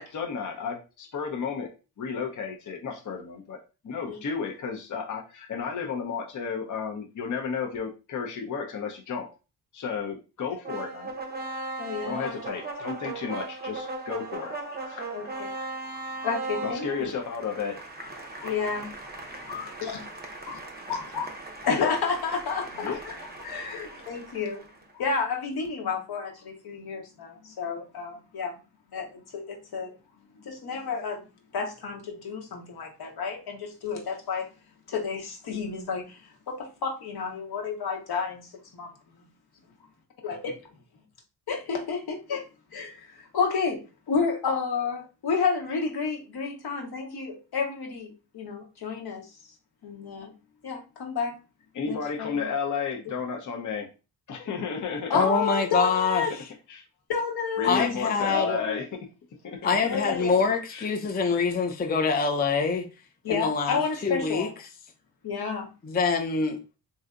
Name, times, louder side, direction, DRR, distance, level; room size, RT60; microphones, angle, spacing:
voice 1, 0.0-1.7 2.0-3.6 3.8-9.3 9.7-11.1 12.0-14.5 14.9-15.1 16.6-17.8 21.7-21.9 22.7-23.0 51.7-53.9 54.3-55.2 56.7-56.8 57.6-58.9 59.4-59.7 60.7-60.9, left 6 dB, 45° left, 0.8 m, -33 dB
sound 1, 10.6-24.8, right 3 dB, 25° right, 0.7 m, -38 dB
voice 2, 11.8-12.3 14.8-14.9 15.1-15.5 15.9-17.1 18.4-18.8 19.5-19.9 20.5-20.6 20.9-21.3 21.6-23.1 23.4-24.6 24.9-28.6 28.9-29.9 30.4-31.2 31.5-34.5 34.9-36.2 36.5-38.5 38.7-38.9 40.2-40.5 41.5-42.4 42.7-43.8 44.1-49.2 49.8-50.3 50.6-51.4 51.8-52.5 55.1-56.3 57.1-57.8 58.3-58.8 59.9-60.3 63.2-64.5 65.2-65.7, left 5 dB, 65° left, 1.2 m, -30 dB
voice 3, 55.1-56.5 57.6-58.6 59.6-62.9 63.3-64.5 65.8-66.6, left 4 dB, 25° left, 0.5 m, -25 dB
3.2 x 2.7 x 2.5 m
cardioid pair, 70°, 41 cm